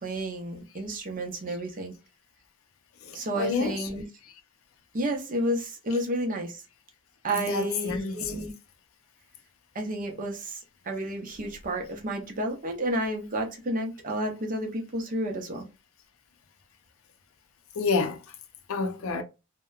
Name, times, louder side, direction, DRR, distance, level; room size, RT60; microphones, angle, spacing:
voice 1, 0.0-1.9 3.1-4.0 4.9-6.6 7.2-8.5 9.7-15.7, right 1 dB, 40° right, 0.6 m, -31 dB
voice 2, 3.0-3.9 7.3-8.3 17.8-18.2 18.7-19.2, left 4 dB, 70° left, 0.5 m, -29 dB
2.8 x 2.1 x 2.3 m
head